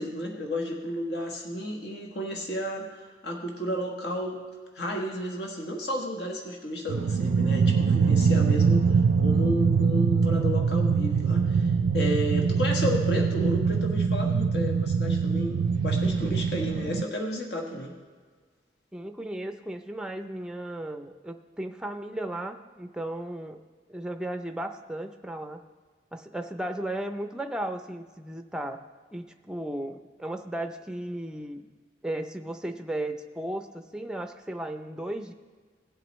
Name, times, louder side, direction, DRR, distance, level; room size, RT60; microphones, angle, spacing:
voice 1, 0.0-4.4 4.7-17.9, left 1 dB, 65° left, 1 dB, 1.4 m, -32 dB
sound 1, 6.9-17.0, right 5 dB, 85° right, 0.3 m, -23 dB
voice 2, 18.9-23.6 23.9-25.6 26.1-28.8 29.1-31.7 32.0-35.3, right 1 dB, 5° right, 6 dB, 0.5 m, -35 dB
17.5 x 7.8 x 3.1 m, 1.6 s
head